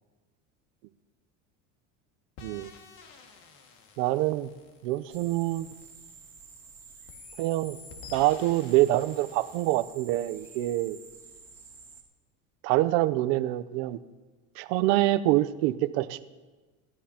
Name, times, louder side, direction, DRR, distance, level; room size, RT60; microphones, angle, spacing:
sound 1, 2.4-6.7 7.1-9.8, left 5 dB, 70° left, 2.0 m, -51 dB
voice 1, 2.4-2.7 4.0-4.5 4.8-5.7 7.4-7.8 8.1-11.0 12.6-14.0 14.6-16.2, right 16 dB, 75° right, 13 dB, 0.7 m, -25 dB
Birds and bugs in the woods of Costa Rica, 5.1-12.0, right 5 dB, 10° right, 1.9 m, -50 dB
27.5 x 12.5 x 2.9 m, 1.3 s
cardioid pair, 145°, 35 cm